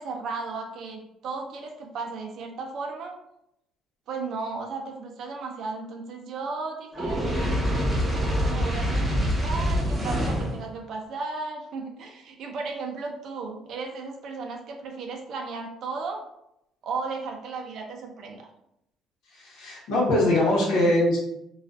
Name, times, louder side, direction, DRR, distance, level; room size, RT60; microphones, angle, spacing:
voice 1, 0.0-3.1 4.1-7.3 8.5-16.2 16.8-18.4, right 4 dB, 60° right, 2 dB, 0.5 m, -35 dB
Fire, 6.9-10.6, equal, 25° right, 0.8 m, -25 dB
voice 2, 19.4-21.2, left 1 dB, 75° left, -4 dB, 0.9 m, -22 dB
2.4 x 2.3 x 2.4 m, 0.81 s
cardioid pair, 110°, 0 cm